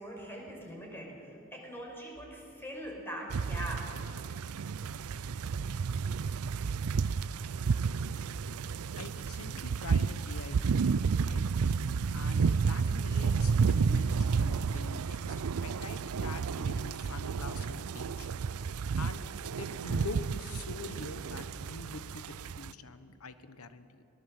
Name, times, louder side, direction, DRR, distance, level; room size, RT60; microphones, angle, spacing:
voice 1, 0.0-4.0, equal, 10° left, -1 dB, 5.5 m, -42 dB
sound 1, 3.3-22.7, right 5 dB, 75° right, 0.5 m, -31 dB
voice 2, 9.0-10.9 11.2-11.4 12.1-18.3 19.0-19.2 19.6-24.0, left 3 dB, 75° left, 11 dB, 1.2 m, -45 dB
22.0 x 20.0 x 7.8 m, 2.7 s
head